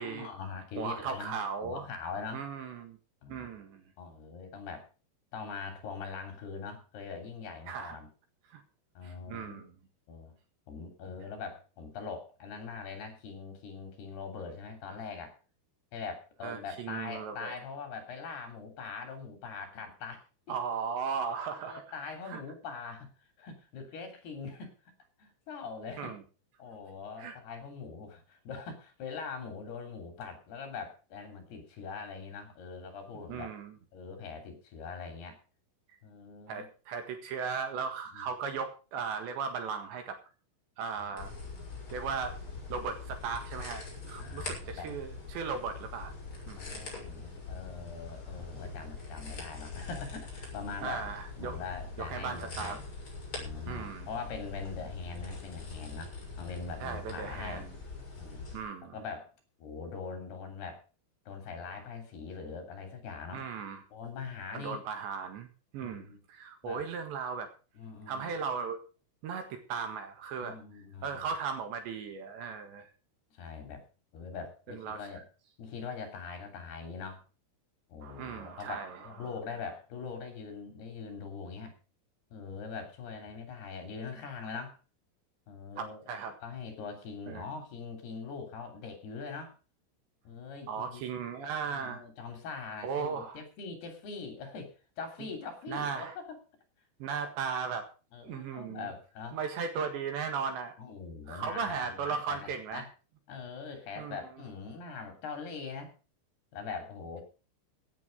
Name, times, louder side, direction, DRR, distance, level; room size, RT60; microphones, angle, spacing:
voice 1, 0.0-2.4 3.2-3.6 4.0-4.9 5.3-8.1 9.0-9.6 10.1-10.3 10.7-15.4 15.9-20.6 21.6-23.1 23.4-24.7 25.2-26.1 26.6-33.5 33.9-35.4 36.0-36.7 38.1-38.3 41.0-41.1 41.4-41.7 44.2-44.9 46.6-51.0 51.4-52.9 53.3-57.7 58.2-58.5 58.9-59.3 59.6-60.8 61.3-63.5 63.9-64.8 65.8-66.2 66.6-66.8 67.7-68.4 70.4-71.3 73.3-73.8 74.1-75.2 75.6-77.2 77.9-81.7 82.3-84.8 85.5-86.0 86.4-89.6 90.2-91.1 91.7-96.4 98.1-99.4 100.8-102.9 103.3-105.9 106.5-107.2, left 5 dB, 55° left, 5 dB, 4.7 m, -42 dB
voice 2, 0.8-1.9 2.3-3.0 3.3-3.8 7.7-8.0 8.5-8.6 9.0-9.7 16.4-17.6 20.5-21.8 22.3-22.4 26.0-26.2 27.2-27.4 33.3-33.7 36.5-40.2 40.8-41.3 41.9-42.4 42.7-46.1 46.5-46.6 50.8-51.6 52.0-52.8 53.7-54.1 56.8-57.8 58.5-59.0 63.3-63.8 64.5-65.5 65.7-67.5 68.1-68.8 69.2-70.6 71.0-72.9 74.7-75.0 78.0-79.1 85.8-86.4 87.3-87.5 90.7-92.0 92.8-93.4 95.7-96.2 97.0-97.9 98.2-98.9 99.3-100.7 101.3-102.9 104.0-104.2, right 6 dB, 65° right, 7 dB, 3.7 m, -37 dB
sound 1, 41.2-58.6, left 3 dB, 25° left, 6.3 m, -43 dB
16.5 x 9.7 x 5.2 m, 0.35 s
omnidirectional pair, 5.9 m